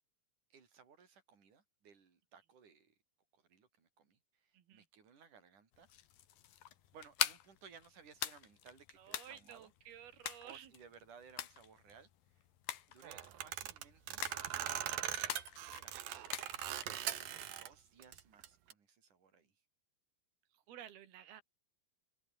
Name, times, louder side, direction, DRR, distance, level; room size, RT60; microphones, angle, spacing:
voice 1, 0.5-3.0 3.3-5.9 6.9-9.7 10.4-12.4 12.9-14.2 15.6-16.1 17.2-19.6, right 6 dB, 55° right, 5.6 m, -61 dB
voice 2, 4.5-4.9 9.0-10.7 13.3-13.4 20.5-21.4, right 10 dB, 90° right, 4.0 m, -53 dB
sound 1, 5.7-17.2, left 11 dB, 70° left, 3.5 m, -44 dB
sound 2, 13.0-17.7 18.0-18.7, right 11 dB, 70° right, 3.4 m, -41 dB
omnidirectional pair, 4.3 m